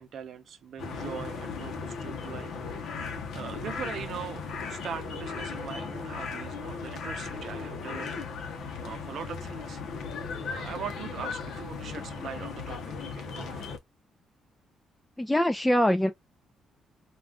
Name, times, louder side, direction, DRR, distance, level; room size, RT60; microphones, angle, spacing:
voice 1, 0.0-2.9 3.3-8.2 8.8-9.8 10.4-13.7, right 8 dB, 65° right, 0.6 m, -41 dB
sound 1, 0.8-13.8, left 5 dB, 70° left, 0.7 m, -37 dB
voice 2, 15.2-16.1, left 1 dB, 10° left, 0.3 m, -23 dB
2.4 x 2.3 x 3.4 m
cardioid pair, 90°, 0 cm